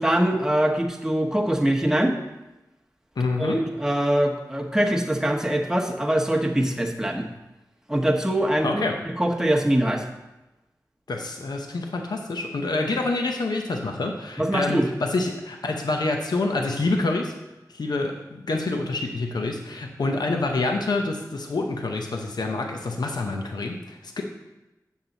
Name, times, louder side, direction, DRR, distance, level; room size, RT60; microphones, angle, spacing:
voice 1, 0.0-2.2 3.4-7.3 7.9-10.0 14.4-14.9, right 1 dB, 10° right, 0 dB, 1.1 m, -23 dB
voice 2, 3.2-3.6 8.6-9.0 11.1-17.3 17.7-24.2, left 3 dB, 85° left, 2 dB, 0.7 m, -27 dB
7.2 x 6.3 x 3.9 m, 1.0 s
cardioid pair, 45°, 7 cm